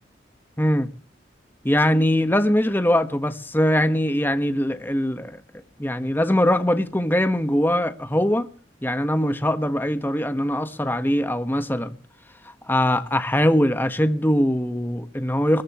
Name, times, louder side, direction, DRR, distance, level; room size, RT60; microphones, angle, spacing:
voice 1, 0.6-0.9 1.6-5.4 5.8-8.5 8.8-12.0 12.4-15.6, left 1 dB, 10° left, 1.4 m, -22 dB
22.0 x 17.0 x 3.1 m
head